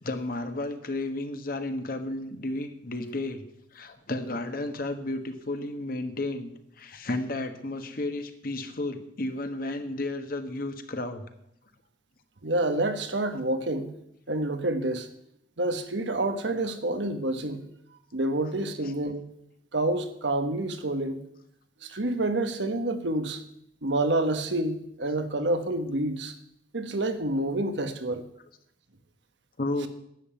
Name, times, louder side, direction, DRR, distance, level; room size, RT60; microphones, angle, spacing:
voice 1, 0.0-3.4 3.7-11.3 18.8-18.9 29.6-29.9, left 2 dB, 55° left, 8 dB, 1.3 m, -32 dB
voice 2, 12.4-13.9 14.3-15.1 15.6-17.6 18.1-19.2 19.7-21.2 21.8-23.4 23.8-26.3 26.7-28.2, right 2 dB, 85° right, 8 dB, 1.4 m, -28 dB
11.0 x 7.7 x 8.8 m, 0.76 s
head